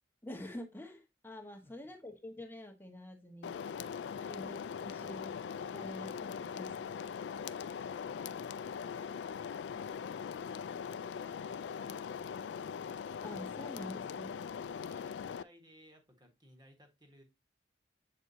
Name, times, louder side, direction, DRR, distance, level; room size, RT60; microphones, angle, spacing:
voice 1, 0.2-3.7 4.3-4.5 4.8-7.0 13.2-14.4, left 1 dB, 10° left, 1.0 m, -47 dB
voice 2, 1.5-1.9 4.0-4.3 7.5-7.9 14.8-17.2, equal, 25° right, 1.5 m, -62 dB
sound 1, 3.4-15.4, left 7 dB, 70° left, 0.3 m, -41 dB
7.8 x 4.4 x 2.7 m
head